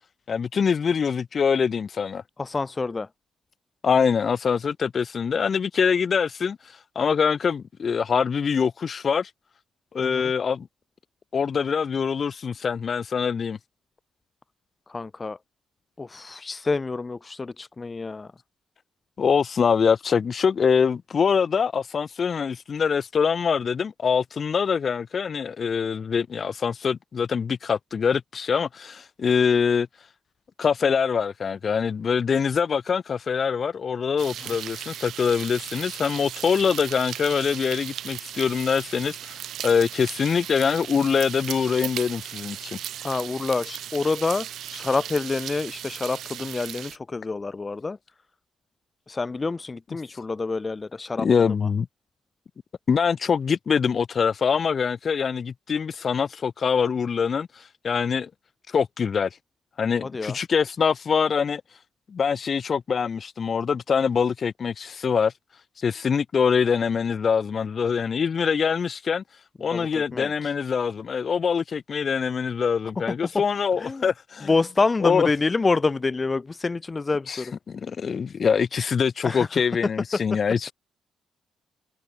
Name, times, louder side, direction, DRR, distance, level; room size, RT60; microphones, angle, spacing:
voice 1, 0.3-2.2 3.8-6.6 6.9-9.3 9.9-10.7 11.3-13.6 19.2-29.9 30.6-42.8 51.2-51.9 52.9-58.3 58.7-59.3 59.8-61.6 62.1-65.3 65.8-69.2 69.6-74.5 75.0-75.3 77.3-80.7, left 6 dB, 45° left, 1.3 m, -24 dB
voice 2, 2.4-3.1 10.0-10.3 14.9-15.4 16.0-18.3 34.4-34.5 43.0-48.0 49.1-51.7 60.0-60.4 69.7-70.5 73.1-73.4 73.8-74.0 74.4-77.5 79.2-79.6 80.1-80.2, left 3 dB, 25° left, 1.4 m, -27 dB
sound 1, 34.2-47.0, right 11 dB, 70° right, 7.1 m, -37 dB
cardioid pair, 90°, 0 cm